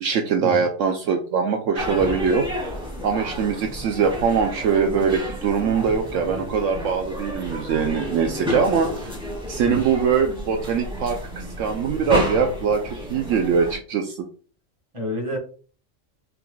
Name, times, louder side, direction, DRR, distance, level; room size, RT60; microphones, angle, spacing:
voice 1, 0.0-2.5 3.0-9.1 9.5-14.2, right 6 dB, 75° right, 4 dB, 0.9 m, -22 dB
sound 1, 1.7-13.7, equal, 5° right, 2.1 m, -31 dB
voice 2, 14.9-15.4, left 1 dB, 25° right, -1 dB, 1.5 m, -29 dB
5.7 x 3.8 x 2.3 m, 0.40 s
omnidirectional pair, 1.4 m